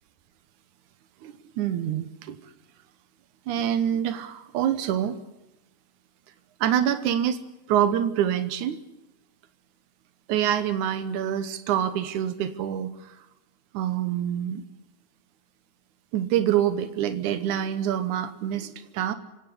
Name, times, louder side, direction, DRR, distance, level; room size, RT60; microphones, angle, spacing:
voice 1, 1.2-2.4 3.5-5.2 6.6-7.4 7.7-8.8 10.3-13.2 13.7-14.6 16.1-19.1, right 10 dB, 90° right, 11 dB, 2.5 m, -26 dB
26.5 x 16.5 x 9.8 m, 0.99 s
omnidirectional pair, 3.4 m